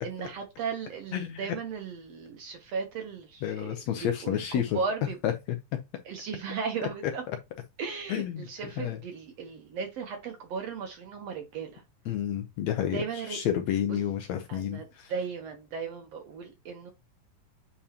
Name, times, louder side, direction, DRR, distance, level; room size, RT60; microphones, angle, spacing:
voice 1, 0.0-3.8 4.2-5.2 6.1-7.2 7.8-11.8 12.9-13.4 13.9-14.0 14.5-16.9, right 5 dB, 65° right, 1.7 m, -36 dB
voice 2, 1.1-1.6 3.4-4.8 5.2-5.6 7.3-7.4 8.1-9.0 12.1-15.1, left 10 dB, 70° left, 1.7 m, -30 dB
8.8 x 4.1 x 2.9 m
omnidirectional pair, 3.7 m